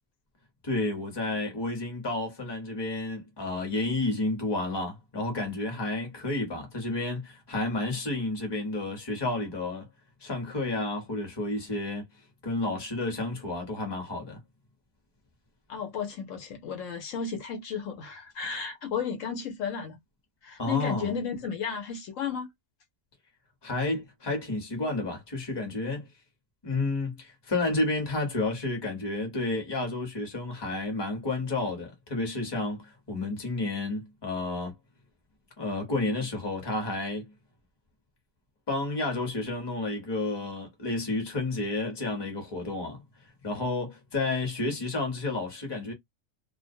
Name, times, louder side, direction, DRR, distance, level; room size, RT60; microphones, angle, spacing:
voice 1, 0.6-9.9 10.2-12.1 12.4-14.4 20.6-21.1 23.6-26.1 26.6-34.7 35.6-37.3 38.7-43.0 43.4-45.9, left 2 dB, 20° left, 0.8 m, -31 dB
voice 2, 15.7-20.0 20.4-22.5, left 6 dB, 70° left, 1.0 m, -33 dB
2.4 x 2.1 x 2.6 m
omnidirectional pair, 1.5 m